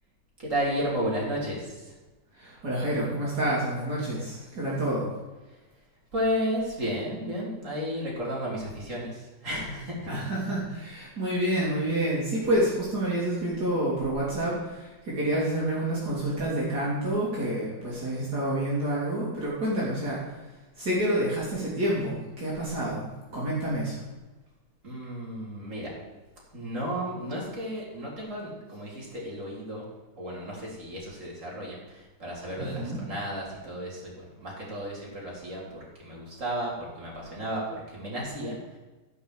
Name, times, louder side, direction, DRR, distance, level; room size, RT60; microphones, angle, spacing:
voice 1, 0.4-1.9 6.1-10.1 24.8-25.9 26.5-29.9 30.2-34.1 34.4-37.6 37.9-38.8, equal, 45° right, -5 dB, 4.2 m, -33 dB
voice 2, 2.3-5.1 10.1-24.1 32.6-33.0, right 1 dB, 65° right, -7 dB, 3.5 m, -28 dB
15.0 x 5.4 x 7.9 m, 1.2 s
omnidirectional pair, 1.9 m